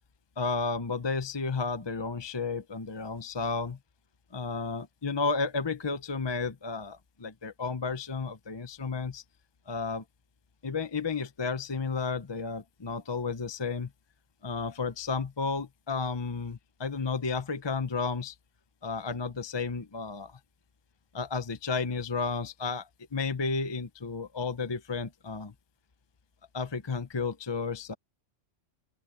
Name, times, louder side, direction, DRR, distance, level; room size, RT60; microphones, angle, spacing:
voice 1, 0.4-3.8 4.3-9.2 9.7-10.0 10.6-13.9 14.4-18.4 18.8-20.4 21.1-25.5 26.5-27.9, left 4 dB, 25° left, 0.6 m, -32 dB
open air
omnidirectional pair, 1.3 m